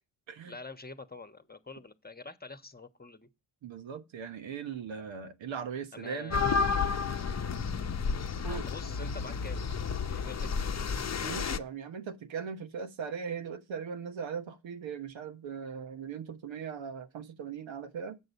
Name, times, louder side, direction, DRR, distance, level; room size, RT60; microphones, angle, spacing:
voice 1, 0.5-3.3 5.9-6.7 8.5-9.6 10.1-10.7, left 3 dB, 20° left, 1.1 m, -46 dB
voice 2, 3.6-6.4 8.4-8.7 11.2-18.2, right 6 dB, 70° right, 1.1 m, -39 dB
sound 1, 6.3-11.6, left 5 dB, 35° left, 0.8 m, -31 dB
7.5 x 6.5 x 4.1 m
supercardioid pair, 45°, 47 cm